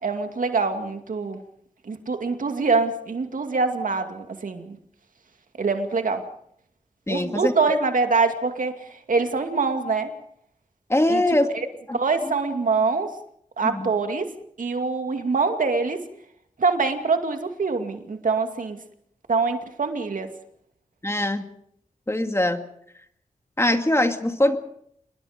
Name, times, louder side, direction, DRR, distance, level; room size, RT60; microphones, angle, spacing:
voice 1, 0.0-1.4 1.8-4.8 5.6-6.2 7.1-8.7 9.1-10.1 11.1-11.2 11.5-11.7 11.9-13.1 13.6-14.3 14.6-16.0 16.6-18.8 19.3-20.3, right 4 dB, 75° right, 6 dB, 2.4 m, -24 dB
voice 2, 7.1-7.5 10.9-11.5 11.9-12.0 13.6-13.9 21.0-21.5 22.1-22.6 23.6-24.6, left 1 dB, 20° left, 6 dB, 2.1 m, -22 dB
27.5 x 21.5 x 5.2 m, 0.70 s
wide cardioid pair, 65°, 14 cm